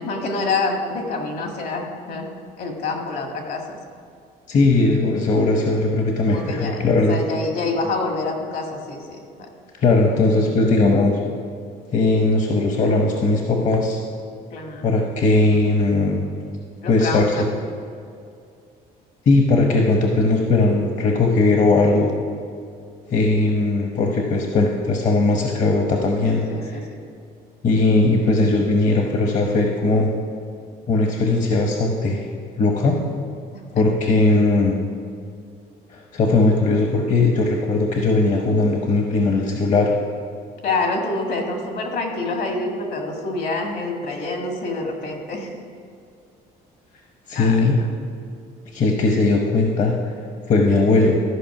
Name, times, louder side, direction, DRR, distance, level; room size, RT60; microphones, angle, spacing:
voice 1, 0.0-2.3 2.6-3.8 6.2-9.5 14.5-14.9 16.8-17.4 26.5-27.0 33.5-33.8 40.6-45.6 47.4-47.9, left 3 dB, 65° left, 2 dB, 1.8 m, -27 dB
voice 2, 4.5-7.2 9.8-11.2 11.9-14.0 14.8-16.2 16.9-17.5 19.3-22.1 23.1-26.5 27.6-30.1 30.9-32.2 32.6-33.0 33.7-34.8 35.9-39.9 47.3-47.8 48.7-50.0 50.5-51.2, left 3 dB, 45° left, 1 dB, 1.0 m, -18 dB
13.5 x 5.1 x 5.9 m, 2.3 s
cardioid pair, 110°, 17 cm